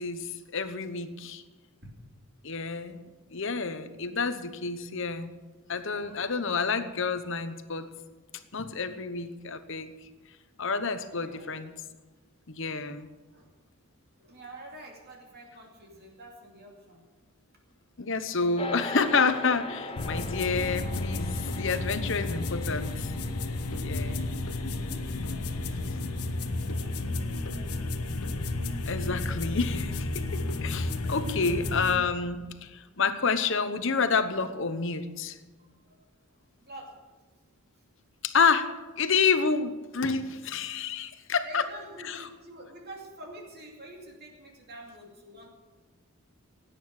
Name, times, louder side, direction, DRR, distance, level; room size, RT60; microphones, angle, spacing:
voice 1, 0.0-1.4 2.4-3.0 3.3-5.3 5.7-7.9 8.5-9.9 10.6-11.7 12.5-13.1 18.0-19.7 20.0-23.1 23.8-24.2 28.9-35.4 38.2-38.7 39.0-41.6 42.0-42.2, left 5 dB, 55° left, 10 dB, 1.0 m, -29 dB
voice 2, 5.8-6.4 11.2-11.6 13.3-13.5 14.2-17.0 19.6-20.2 23.6-28.0 30.8-31.0 35.6-37.1 41.4-45.5, right 1 dB, 45° right, 0 dB, 2.6 m, -49 dB
sound 1, 18.6-28.1, left 2 dB, 25° left, 0.7 m, -42 dB
sound 2, 20.0-32.0, left 2 dB, 90° left, 1.1 m, -32 dB
17.0 x 9.4 x 6.5 m, 1.3 s
head